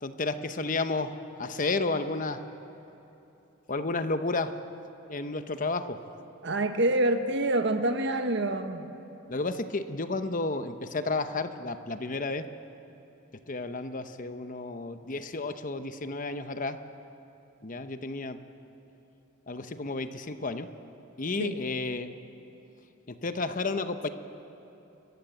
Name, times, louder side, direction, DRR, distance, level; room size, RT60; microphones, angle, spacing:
voice 1, 0.0-1.1 1.4-2.4 3.7-4.5 5.1-6.0 9.3-12.4 13.5-16.8 17.6-18.4 19.5-20.7 21.2-22.1 23.1-24.1, left 3 dB, 40° left, 9 dB, 0.9 m, -31 dB
voice 2, 6.4-8.9 21.4-21.6, right 1 dB, 55° right, 7 dB, 1.3 m, -27 dB
29.5 x 15.0 x 8.1 m, 3.0 s
head